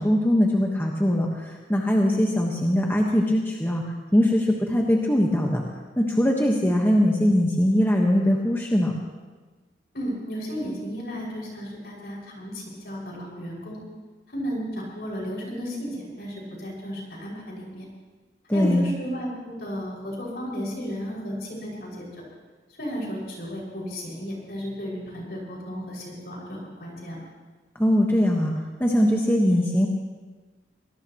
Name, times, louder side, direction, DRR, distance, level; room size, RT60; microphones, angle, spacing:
voice 1, 0.0-3.8 4.1-5.6 6.0-8.9 18.5-18.9 27.8-28.5 28.8-29.9, equal, 10° left, -1 dB, 1.3 m, -21 dB
voice 2, 9.9-13.8 14.3-17.9 18.5-22.1 22.8-27.2, equal, 60° left, -3 dB, 6.0 m, -34 dB
24.0 x 18.5 x 3.0 m, 1.3 s
head